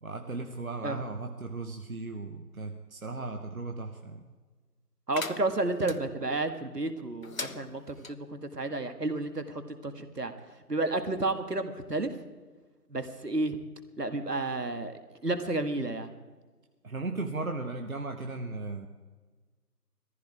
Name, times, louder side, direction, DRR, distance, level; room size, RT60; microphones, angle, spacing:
voice 1, 0.0-4.3 16.8-18.9, right 3 dB, 60° right, 4 dB, 1.3 m, -36 dB
sound 1, 5.1-6.0 7.2-8.1, left 4 dB, 60° left, 0.8 m, -40 dB
voice 2, 5.1-10.3 10.7-12.1 12.9-13.6 14.0-16.1, right 2 dB, 75° right, 8 dB, 2.0 m, -31 dB
18.0 x 14.5 x 4.9 m, 1.3 s
figure-of-eight pair, 170°, 48 cm